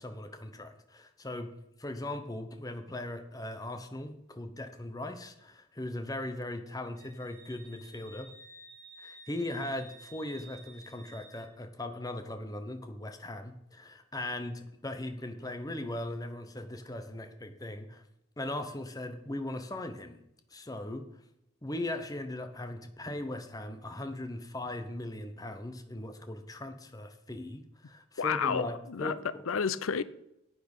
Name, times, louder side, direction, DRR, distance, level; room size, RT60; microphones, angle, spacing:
voice 1, 0.0-1.5 1.8-8.3 9.0-18.0 18.4-20.2 20.5-21.1 21.6-29.4, left 1 dB, 20° left, 0.9 m, -39 dB
Wind instrument woodwind instrument, 7.0-11.5, right 2 dB, 40° right, 2.8 m, -53 dB
voice 2, 28.2-30.0, left 6 dB, 90° left, 0.5 m, -31 dB
10.0 x 8.7 x 5.5 m
head